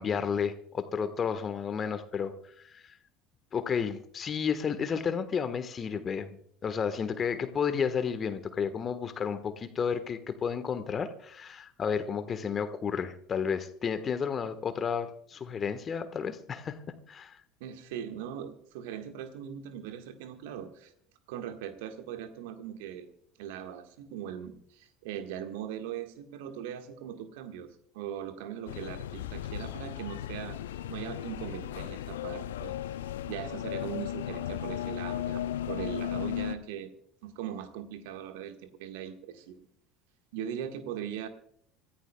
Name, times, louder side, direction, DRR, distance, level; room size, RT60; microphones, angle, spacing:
voice 1, 0.0-2.3 2.7-2.9 3.5-6.3 6.6-16.8 17.1-17.4, left 6 dB, 35° left, 10 dB, 1.4 m, -32 dB
voice 2, 17.6-20.9 21.3-23.1 23.4-30.6 30.9-32.7 33.3-36.9 37.2-39.6 40.3-41.3, right 9 dB, 65° right, 7 dB, 1.6 m, -40 dB
sound 1, 28.7-36.5, left 11 dB, 70° left, 0.6 m, -36 dB
26.0 x 14.5 x 2.3 m, 0.67 s
figure-of-eight pair, 65°, 0 cm